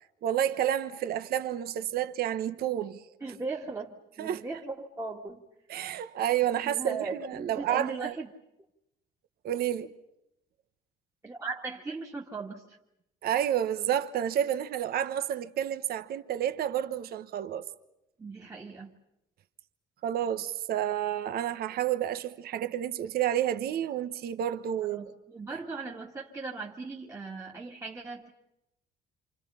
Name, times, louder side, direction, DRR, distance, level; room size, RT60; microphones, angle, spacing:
voice 1, 0.2-3.0 4.2-4.4 5.7-8.1 9.4-9.9 13.2-17.7 20.0-25.0, right 10 dB, 65° right, 1.2 m, -30 dB
voice 2, 3.2-5.4 6.6-8.3 11.2-12.8 18.2-19.0 24.8-28.3, right 3 dB, 15° right, 2.0 m, -38 dB
28.0 x 27.5 x 5.7 m
cardioid pair, 110°, 17 cm